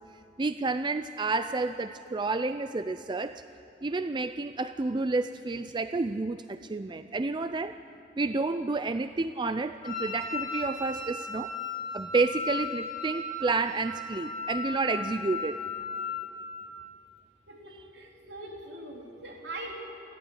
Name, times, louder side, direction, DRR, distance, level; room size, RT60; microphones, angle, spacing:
voice 1, 0.4-3.4 3.8-7.8 8.2-11.5 11.9-15.6, right 3 dB, 25° right, 11 dB, 0.4 m, -30 dB
Wind instrument woodwind instrument, 9.8-16.4, left 3 dB, 25° left, 6.0 m, -36 dB
voice 2, 17.5-19.7, right 2 dB, 65° right, 0 dB, 3.6 m, -42 dB
28.0 x 11.5 x 9.9 m, 2.7 s
head